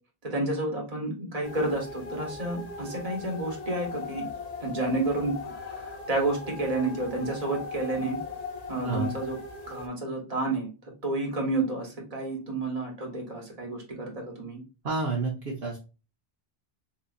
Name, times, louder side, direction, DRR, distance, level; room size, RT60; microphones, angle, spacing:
voice 1, 0.2-4.2 4.6-5.3 5.7-8.2 8.7-9.4 9.7-10.7 11.0-14.6, right 2 dB, 40° right, 0 dB, 1.3 m, -30 dB
sound 1, 1.4-9.9, left 4 dB, 45° left, 0.8 m, -39 dB
voice 2, 14.8-15.8, right 3 dB, 60° right, -2 dB, 0.9 m, -29 dB
3.9 x 2.7 x 2.4 m, 0.32 s
omnidirectional pair, 1.0 m